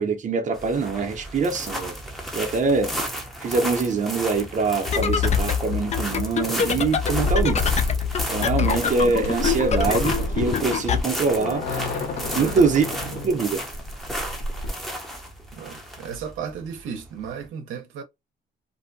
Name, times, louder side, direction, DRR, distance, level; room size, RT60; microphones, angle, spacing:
voice 1, 0.0-1.9 2.3-2.9 3.4-7.6 8.3-11.7 12.4-12.9 13.2-13.6, right 4 dB, 40° right, 0.7 m, -23 dB
sound 1, 0.5-17.4, equal, ahead, 0.7 m, -34 dB
sound 2, 4.9-11.0, left 7 dB, 35° left, 0.4 m, -25 dB
sound 3, 7.1-14.7, left 1 dB, 60° left, 1.2 m, -30 dB
voice 2, 12.3-12.7 13.1-13.2 15.5-18.0, right 7 dB, 85° right, 0.7 m, -34 dB
2.6 x 2.1 x 2.6 m
cardioid pair, 90°, 20 cm